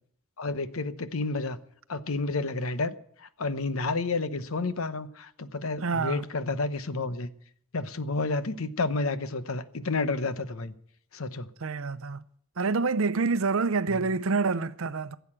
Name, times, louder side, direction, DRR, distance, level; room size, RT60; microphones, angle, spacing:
voice 1, 0.4-1.6 1.9-3.0 3.2-7.3 7.7-10.7 11.1-11.5 13.9-14.0, left 3 dB, 75° left, 0.9 m, -30 dB
voice 2, 5.8-6.2 11.6-12.2 12.6-15.2, right 4 dB, 70° right, 0.7 m, -27 dB
15.5 x 8.1 x 8.6 m
head